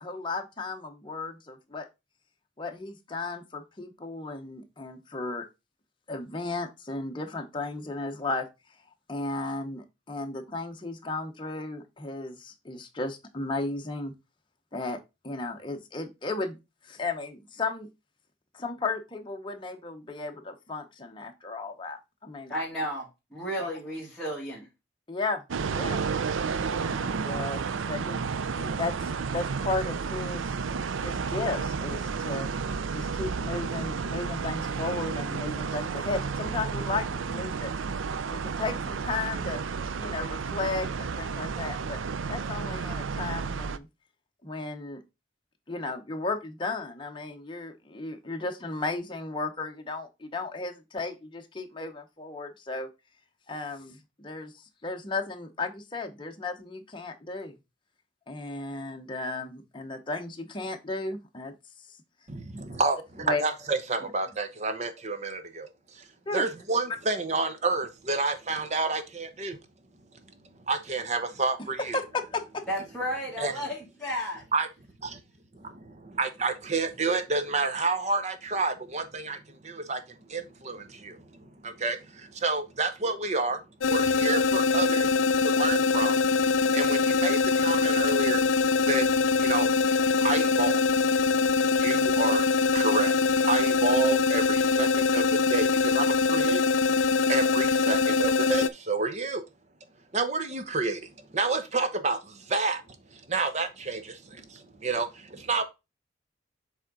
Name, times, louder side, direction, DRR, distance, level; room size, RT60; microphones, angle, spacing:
voice 1, 0.0-1.9 2.6-5.5 6.1-8.5 9.1-14.1 14.7-15.0 15.2-16.6 16.8-17.9 18.5-22.5 23.6-23.7 25.1-25.4 25.7-26.1 26.7-28.3 28.6-30.5 31.0-32.5 32.9-37.7 38.3-39.6 40.0-42.0 42.3-43.9 44.4-45.0 45.7-52.9 53.5-54.5 54.8-57.5 58.3-61.5 63.3-63.4 66.3-66.5 71.9-72.0 72.3-72.6, left 3 dB, 25° left, 0.9 m, -34 dB
voice 2, 22.5-24.7 72.7-74.4, equal, 5° left, 1.9 m, -33 dB
sound 1, 25.5-43.8, right 5 dB, 85° right, 0.5 m, -32 dB
voice 3, 62.3-65.7 65.9-66.1 66.3-69.6 70.7-72.0 73.4-73.5 74.5-74.7 75.0-75.2 75.5-80.0 80.3-83.6 83.9-86.2 86.5-88.4 88.8-89.1 89.4-89.7 90.2-90.8 91.8-93.1 93.4-96.6 97.3-99.4 100.1-102.8 103.1-105.6, right 3 dB, 35° right, 0.8 m, -29 dB
sound 2, 83.8-98.7, left 4 dB, 85° left, 0.5 m, -23 dB
7.3 x 3.7 x 3.9 m
head